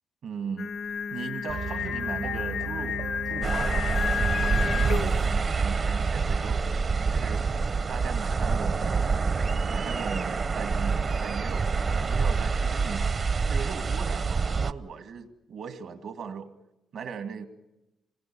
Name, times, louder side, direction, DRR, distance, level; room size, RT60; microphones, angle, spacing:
voice 1, 0.2-0.7 1.1-3.9 4.4-7.4 7.9-9.3 9.7-13.2 13.5-16.5 16.9-17.5, right 6 dB, 75° right, 8 dB, 2.0 m, -38 dB
Singing, 0.6-5.3, left 7 dB, 65° left, 0.8 m, -31 dB
sound 1, 1.5-5.7, right 7 dB, 90° right, 3.4 m, -39 dB
sound 2, 3.4-14.7, right 4 dB, 45° right, 0.8 m, -26 dB
27.0 x 20.0 x 7.0 m, 0.98 s
cardioid pair, 75°, 0 cm